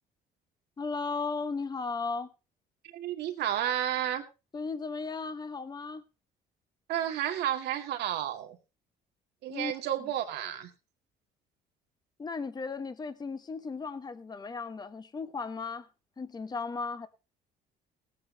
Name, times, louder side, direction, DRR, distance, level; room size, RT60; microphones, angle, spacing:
voice 1, 0.8-2.3 4.5-6.0 9.5-9.7 12.2-15.9 16.2-17.1, left 4 dB, 25° left, 1.1 m, -35 dB
voice 2, 2.9-4.2 6.9-8.6 9.4-10.7, right 11 dB, 80° right, 2.2 m, -31 dB
18.0 x 8.8 x 3.9 m
cardioid pair, 110°, 17 cm